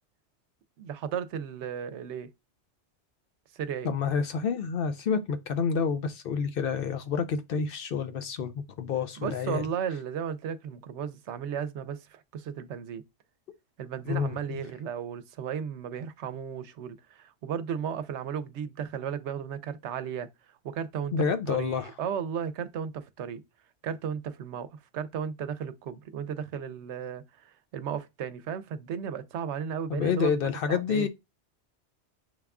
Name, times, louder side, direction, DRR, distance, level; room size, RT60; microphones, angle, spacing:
voice 1, 0.8-2.3 3.5-3.9 9.2-13.0 13.8-20.3 20.6-21.1 21.5-23.4 23.8-31.1, right 8 dB, 80° right, 0.9 m, -35 dB
voice 2, 3.8-9.7 14.1-14.6 21.1-21.9 29.9-31.1, left 6 dB, 60° left, 0.7 m, -29 dB
6.3 x 2.3 x 3.5 m
omnidirectional pair, 1.2 m